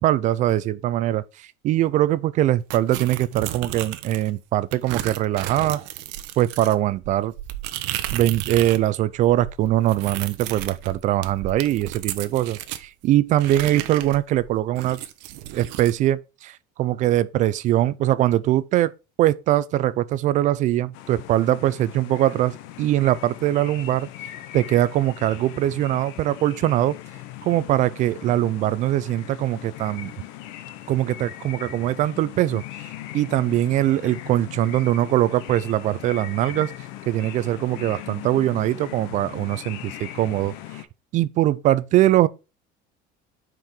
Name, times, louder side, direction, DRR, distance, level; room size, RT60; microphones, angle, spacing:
voice 1, 0.0-5.8 6.4-7.3 8.1-15.0 15.5-18.9 19.2-24.1 24.5-27.0 27.4-30.1 30.9-32.6 33.1-36.7 37.1-40.5 41.1-42.3, right 13 dB, 40° right, 0.4 m, -22 dB
sound 1, 2.7-4.3 4.7-8.9 9.1-12.9 13.4-16.0, right 14 dB, 70° right, 0.8 m, -33 dB
sound 2, 20.9-40.9, left 13 dB, 75° left, 0.9 m, -39 dB
5.8 x 4.5 x 4.8 m
cardioid pair, 160°, 19 cm